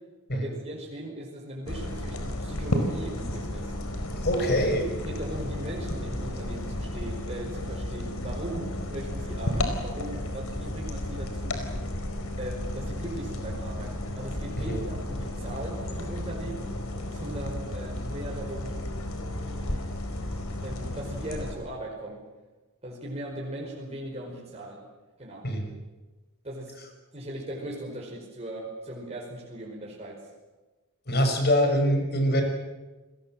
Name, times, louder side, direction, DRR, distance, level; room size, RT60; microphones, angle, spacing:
voice 1, 0.3-3.8 5.0-11.7 12.4-16.7 17.1-18.8 19.3-19.8 20.6-22.2 22.8-24.8 25.2-25.5 26.4-26.7 27.1-30.2, right 1 dB, 30° right, -3 dB, 5.1 m, -38 dB
sound 1, 1.7-21.6, left 1 dB, 75° left, 4.6 m, -33 dB
voice 2, 4.2-4.8 14.6-14.8 25.4-25.7 31.1-32.4, equal, 50° left, 5 dB, 5.8 m, -24 dB
29.5 x 21.0 x 7.6 m, 1.2 s
head